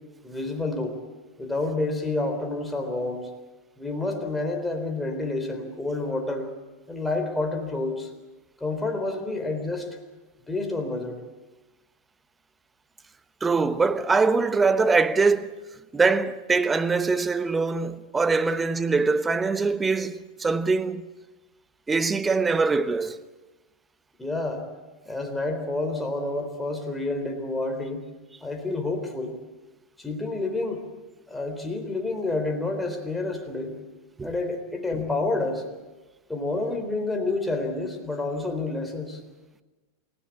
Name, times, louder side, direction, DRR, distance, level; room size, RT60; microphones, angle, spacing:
voice 1, 0.2-1.0 1.4-3.3 3.8-6.5 6.9-8.1 8.6-9.9 10.5-11.2 24.2-24.7 25.1-28.0 28.4-29.3 30.0-30.9 31.3-33.7 34.2-35.6 36.3-39.2, left 2 dB, 5° left, 3.9 m, -29 dB
voice 2, 13.4-15.5 15.9-21.1 21.9-23.2 34.2-34.3, right 4 dB, 15° right, 1.1 m, -23 dB
28.5 x 16.5 x 8.6 m
figure-of-eight pair, 90°, 0 cm